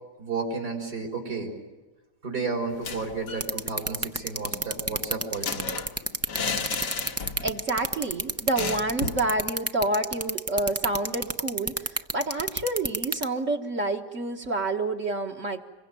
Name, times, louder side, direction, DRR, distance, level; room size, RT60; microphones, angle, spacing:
voice 1, 0.2-1.5 2.2-5.7, right 4 dB, 70° right, 1 dB, 4.6 m, -32 dB
sound 1, 2.7-3.5 3.8-3.9 4.2-7.6 7.9-8.0 8.6-9.3, left 5 dB, 80° left, 2.2 m, -33 dB
sound 2, 3.4-13.2, right 2 dB, 15° right, 0.6 m, -27 dB
voice 2, 7.4-15.6, right 2 dB, 50° right, 0 dB, 1.8 m, -28 dB
26.5 x 23.0 x 9.1 m, 1.1 s
omnidirectional pair, 1.8 m